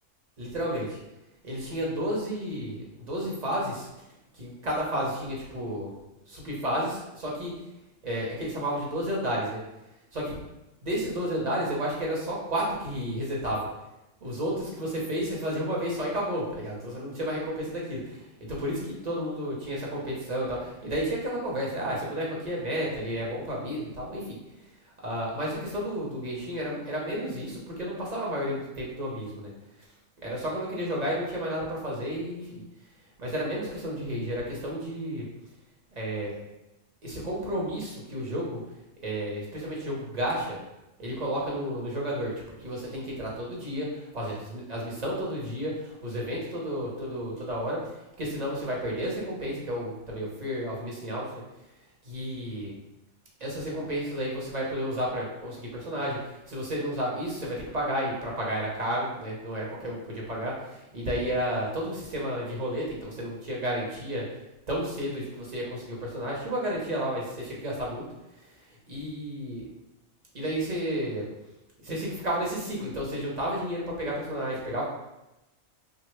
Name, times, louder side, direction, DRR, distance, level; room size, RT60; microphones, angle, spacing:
voice 1, 0.4-1.0 1.4-3.9 4.3-5.9 6.3-7.5 8.0-9.6 10.1-10.3 10.8-13.7 14.2-24.4 25.0-29.5 30.2-32.6 33.2-35.3 36.0-36.4 37.0-38.6 39.0-40.6 41.0-47.8 48.2-51.3 52.0-52.7 53.4-64.3 64.7-68.0 68.9-69.6 70.3-71.2 71.8-74.8, equal, 45° right, -4 dB, 0.7 m, -32 dB
3.2 x 2.2 x 3.1 m, 0.94 s
omnidirectional pair, 1.2 m